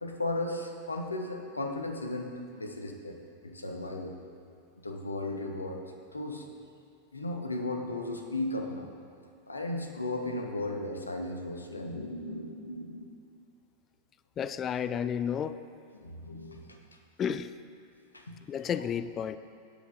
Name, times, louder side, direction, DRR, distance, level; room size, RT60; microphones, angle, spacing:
voice 1, 0.0-3.2 3.4-4.2 4.8-6.5 7.1-8.9 9.5-13.2 15.9-16.8 18.1-18.4 18.8-18.9, left 2 dB, 80° left, 3 dB, 1.0 m, -36 dB
voice 2, 14.4-15.6 17.2-17.5 18.5-19.4, left 8 dB, 25° left, 13 dB, 0.3 m, -31 dB
18.5 x 7.8 x 2.6 m, 2.4 s
figure-of-eight pair, 90°, 0 cm